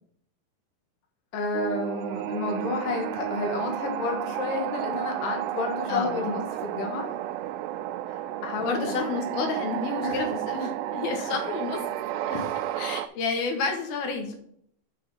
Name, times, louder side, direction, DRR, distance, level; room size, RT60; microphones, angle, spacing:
voice 1, 1.3-7.1 8.1-8.9 10.0-10.2 11.1-11.3 12.3-12.6, left 4 dB, 50° left, 2 dB, 2.1 m, -31 dB
sound 1, 1.5-13.1, right 13 dB, 85° right, 2.4 m, -32 dB
voice 2, 5.9-6.4 8.6-11.8 12.7-14.3, left 4 dB, 85° left, 3 dB, 3.2 m, -30 dB
6.6 x 6.3 x 5.6 m, 0.67 s
omnidirectional pair, 4.2 m